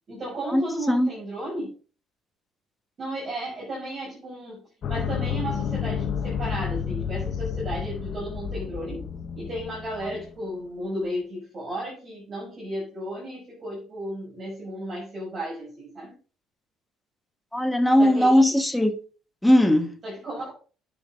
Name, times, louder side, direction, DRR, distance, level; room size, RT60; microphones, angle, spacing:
voice 1, 0.1-1.7 3.0-9.1 9.3-16.1 18.0-18.6 20.0-20.5, right 1 dB, 35° right, 6.1 m, -34 dB
sound 1, 4.8-10.3, left 7 dB, 50° left, 1.0 m, -30 dB
voice 2, 17.5-19.0 19.4-19.9, left 1 dB, 5° left, 1.4 m, -19 dB
9.5 x 7.1 x 5.1 m
cardioid pair, 140°, 0 cm